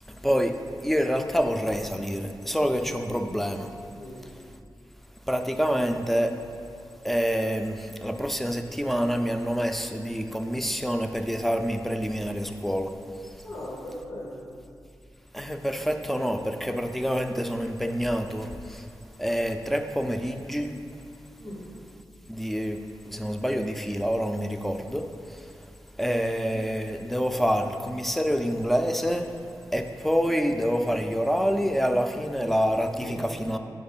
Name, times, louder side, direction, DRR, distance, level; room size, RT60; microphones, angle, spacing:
voice 1, 0.1-0.5 0.8-3.7 5.3-6.3 7.0-12.9 13.2-13.3 15.3-18.9 19.2-20.7 22.3-25.5 26.0-29.3 29.7-33.6, equal, 5° left, 6 dB, 0.3 m, -27 dB
voice 2, 3.9-4.3 13.4-14.6 21.4-21.6 33.0-33.2, left 1 dB, 85° left, -6 dB, 1.1 m, -39 dB
4.8 x 4.4 x 5.4 m, 2.4 s
wide cardioid pair, 115°, 7 cm